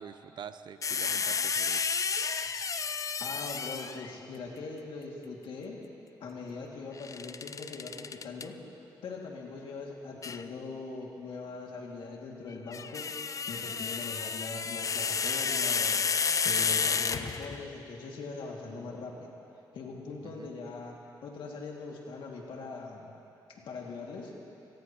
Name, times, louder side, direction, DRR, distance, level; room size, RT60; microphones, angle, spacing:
voice 1, 0.0-1.9 20.2-20.5, right 7 dB, 65° right, 11 dB, 0.7 m, -45 dB
sound 1, 0.8-4.1 7.0-8.5 10.2-10.4 12.5-17.7, left 5 dB, 40° left, 0.5 m, -31 dB
voice 2, 3.2-5.8 6.2-8.5 9.0-13.1 13.5-19.3 19.7-23.1 23.5-24.3, left 4 dB, 80° left, -1 dB, 2.3 m, -41 dB
26.0 x 18.0 x 3.0 m, 2.8 s
cardioid pair, 80°, 8 cm